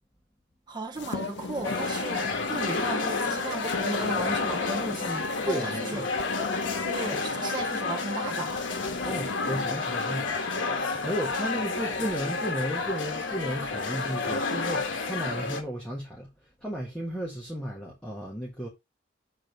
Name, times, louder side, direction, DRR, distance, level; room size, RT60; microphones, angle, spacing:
voice 1, 0.7-6.0 6.8-8.6, right 2 dB, 25° right, 0.8 m, -35 dB
sound 1, 0.9-10.4, left 3 dB, 65° left, 0.6 m, -39 dB
sound 2, 1.6-15.6, left 4 dB, 85° left, 1.3 m, -30 dB
voice 2, 5.4-6.1 9.0-18.7, equal, 5° left, 1.6 m, -34 dB
6.9 x 3.8 x 4.6 m
head